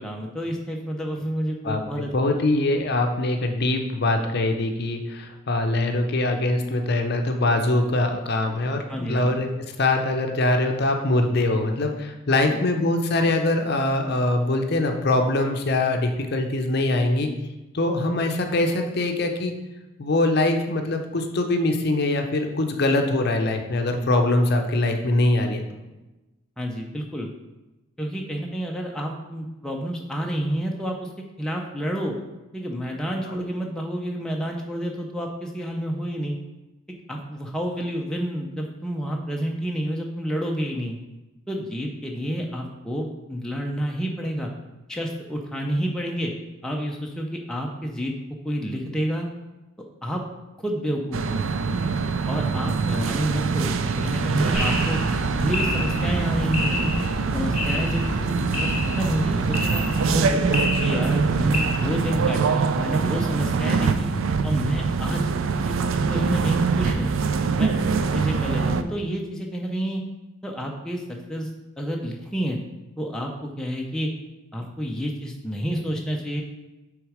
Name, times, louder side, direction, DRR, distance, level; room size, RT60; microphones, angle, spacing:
voice 1, 0.0-2.1 8.9-9.4 12.5-12.6 26.6-27.3 28.0-31.1 31.4-32.2 32.5-36.4 37.1-41.0 41.5-44.5 44.9-46.3 46.6-48.1 48.4-49.3 50.0-50.2 50.6-51.4 51.8-51.9 52.3-55.0 55.4-56.9 57.3-60.4 60.8-64.1 64.4-65.3 65.6-65.8 66.1-67.1 67.6-67.7 68.0-70.0 70.4-71.5 71.8-72.6 73.0-74.1 74.5-76.4, equal, 5° left, -1 dB, 0.5 m, -29 dB
voice 2, 2.1-9.5 9.8-17.3 17.7-19.5 20.0-25.6 33.3-33.4 52.9-53.1, left 2 dB, 50° left, 5 dB, 0.6 m, -23 dB
sound 1, 51.1-68.8, right 5 dB, 70° right, 0.4 m, -24 dB
sound 2, 54.5-61.6, left 1 dB, 35° left, 1.2 m, -29 dB
6.2 x 3.6 x 4.9 m, 1.1 s
head